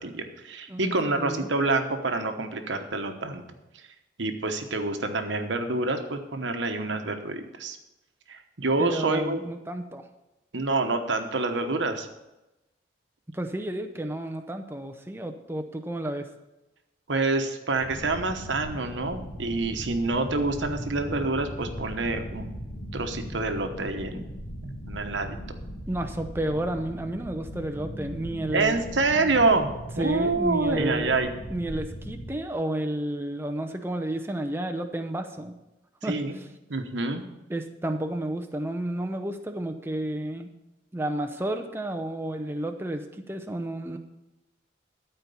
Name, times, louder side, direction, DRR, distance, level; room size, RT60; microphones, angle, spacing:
voice 1, 0.0-3.4 4.2-7.8 8.3-9.4 10.5-12.1 17.1-22.5 22.9-24.3 24.6-25.6 28.5-29.7 30.0-31.3 36.0-36.4 36.7-37.3, right 3 dB, 70° right, 6 dB, 1.1 m, -27 dB
voice 2, 0.7-1.5 8.8-10.1 13.3-16.3 25.9-28.8 30.0-31.2 31.5-35.6 36.0-36.5 37.5-40.5 40.9-44.0, right 1 dB, 10° right, 5 dB, 0.7 m, -31 dB
sound 1, 17.7-32.3, equal, 80° left, 2.0 m, -39 dB
13.5 x 4.5 x 6.9 m, 0.98 s
head